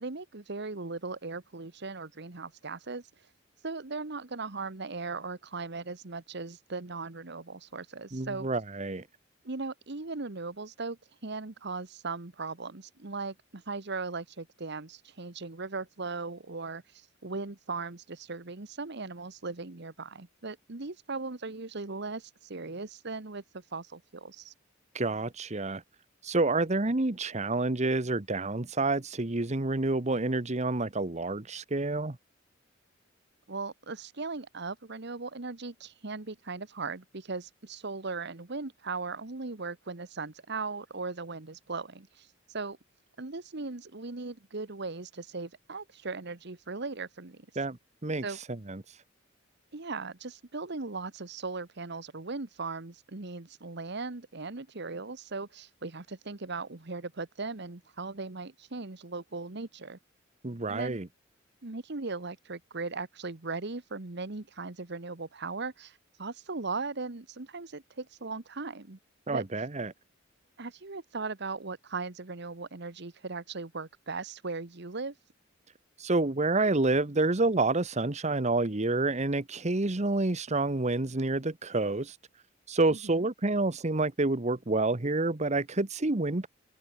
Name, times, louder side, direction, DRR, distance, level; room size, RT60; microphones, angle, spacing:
voice 1, 0.0-3.1 3.6-8.5 9.4-24.5 33.5-42.3 42.5-42.8 43.2-47.5 48.2-48.4 49.7-60.0 60.7-61.0 61.6-69.0 69.3-69.4 70.6-75.1 82.9-83.3, right 3 dB, 60° right, 1.4 m, -38 dB
voice 2, 8.1-9.1 24.9-25.8 26.2-32.2 47.6-48.2 48.7-48.8 60.4-61.1 69.3-69.9 76.0-82.2 82.7-86.5, right 2 dB, 35° right, 1.2 m, -28 dB
head